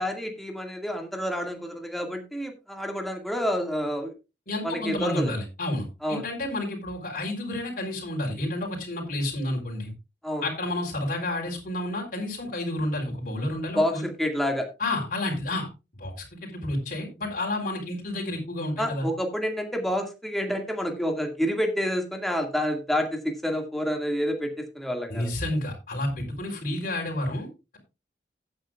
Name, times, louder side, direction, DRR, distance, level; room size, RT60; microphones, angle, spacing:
voice 1, 0.0-4.1 4.6-5.3 6.0-6.2 10.2-10.4 13.7-14.7 18.8-25.3, equal, ahead, 3 dB, 1.9 m, -28 dB
voice 2, 4.5-9.9 10.4-14.0 14.8-19.1 25.1-27.8, left 1 dB, 55° left, -2 dB, 3.7 m, -30 dB
16.5 x 8.7 x 2.4 m, 0.27 s
head